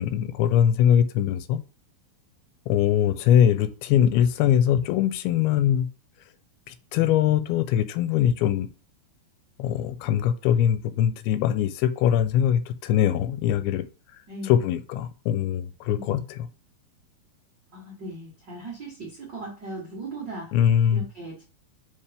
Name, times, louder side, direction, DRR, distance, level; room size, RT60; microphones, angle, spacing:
voice 1, 0.0-1.6 2.7-5.9 6.7-8.7 9.6-13.9 14.5-16.4 20.5-21.1, left 10 dB, 85° left, 2.5 m, -22 dB
voice 2, 14.3-14.6 15.9-16.2 17.7-20.6 20.9-21.4, right 2 dB, 90° right, 0.9 m, -38 dB
5.7 x 4.9 x 3.4 m
omnidirectional pair, 4.4 m